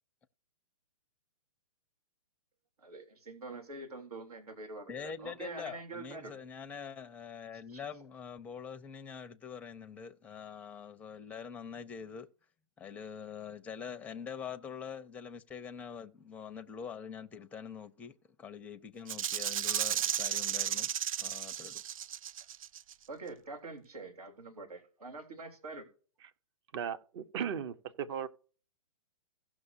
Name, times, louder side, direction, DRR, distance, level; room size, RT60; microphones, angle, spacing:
voice 1, 2.8-6.3 7.7-7.8 23.1-25.9, right 3 dB, 85° right, 3.4 m, -45 dB
voice 2, 4.9-12.3 12.8-20.9 21.2-21.8, left 7 dB, 10° left, 0.5 m, -44 dB
Rattle (instrument), 19.1-22.9, right 10 dB, 65° right, 0.5 m, -34 dB
voice 3, 26.7-28.3, right 8 dB, 45° right, 1.0 m, -36 dB
17.0 x 6.2 x 2.8 m
hypercardioid pair, 140°, 19 cm